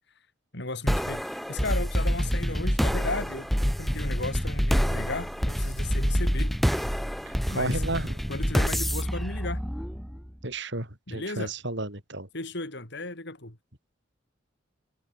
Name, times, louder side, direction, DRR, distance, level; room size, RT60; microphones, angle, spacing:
voice 1, 0.5-6.6 7.5-7.8 8.3-9.6 11.1-11.5 12.3-13.6, left 2 dB, 60° left, 4.9 m, -35 dB
sound 1, 0.9-10.3, equal, ahead, 1.8 m, -27 dB
voice 2, 7.3-8.2 10.4-12.3, right 2 dB, 60° right, 6.2 m, -32 dB
head